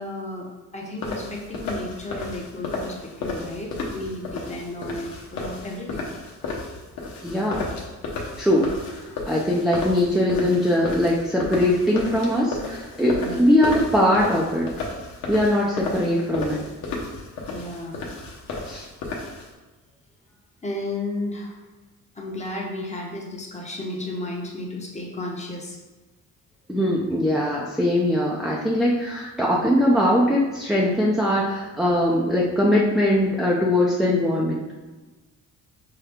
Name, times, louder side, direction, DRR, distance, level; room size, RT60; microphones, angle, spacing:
voice 1, 0.0-6.0 13.2-13.4 17.5-18.0 20.6-21.6 22.1-25.8, left 2 dB, 20° left, -1 dB, 1.0 m, -33 dB
sound 1, 1.0-19.5, left 3 dB, 85° left, 1.0 m, -33 dB
voice 2, 7.2-7.6 8.4-14.7 15.3-16.6 18.6-18.9 26.7-34.6, left 1 dB, ahead, -5 dB, 0.5 m, -21 dB
5.7 x 2.3 x 3.5 m, 1.2 s
cardioid pair, 95°, 35 cm